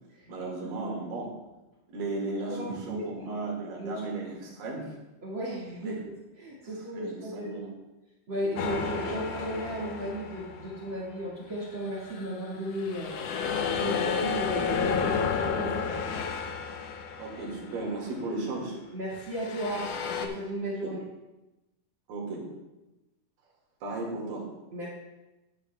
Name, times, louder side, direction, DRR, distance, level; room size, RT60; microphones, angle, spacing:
voice 1, 0.3-1.3 1.9-4.9 5.9-6.0 6.9-7.7 9.1-9.2 14.0-14.1 17.2-18.8 20.8-20.9 22.1-22.5 23.8-24.5, right 2 dB, 80° right, -2 dB, 3.7 m, -35 dB
voice 2, 2.5-3.0 3.8-3.9 5.2-6.0 6.3-7.7 8.3-13.1 13.8-16.1 18.9-21.0 24.7-24.9, right 1 dB, 40° right, -6 dB, 2.3 m, -35 dB
sound 1, 8.6-11.1 11.6-18.1 19.2-20.3, left 6 dB, 85° left, 1.4 m, -32 dB
12.0 x 9.9 x 2.3 m, 1.0 s
omnidirectional pair, 3.9 m